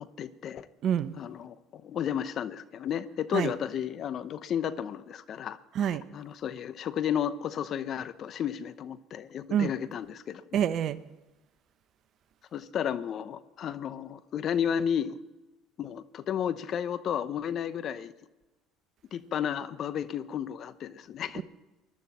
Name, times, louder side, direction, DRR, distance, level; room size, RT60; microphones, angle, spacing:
voice 1, 0.0-0.7 1.2-5.6 5.9-10.4 12.5-15.2 15.8-18.1 19.1-21.4, left 9 dB, 50° left, 14 dB, 0.9 m, -33 dB
voice 2, 0.8-1.1 3.3-3.5 5.7-6.0 9.5-9.7 10.5-11.0 21.3-21.4, right 9 dB, 55° right, 14 dB, 0.8 m, -27 dB
20.5 x 12.0 x 4.3 m, 1.1 s
hypercardioid pair, 70°, 0 cm